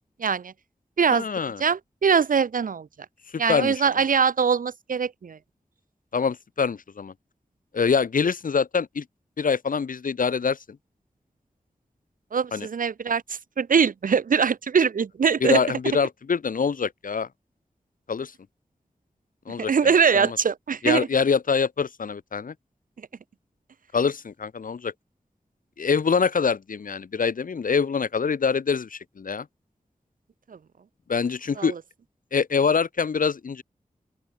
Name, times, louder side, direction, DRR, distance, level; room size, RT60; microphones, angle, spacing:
voice 1, 0.2-0.5 1.0-1.3 1.6-2.9 3.4-5.4 12.3-15.6 19.7-21.1 30.5-30.6 31.6-31.8, right 6 dB, 85° right, 0.7 m, -22 dB
voice 2, 1.1-1.6 3.3-3.8 6.1-7.1 7.7-9.0 9.4-10.6 12.5-12.7 15.4-17.3 18.1-18.3 19.5-19.7 20.1-20.4 20.8-22.5 23.9-24.9 25.8-29.5 31.1-31.7 32.3-33.6, left 5 dB, 85° left, 1.0 m, -24 dB
open air
wide cardioid pair, 65°, 14 cm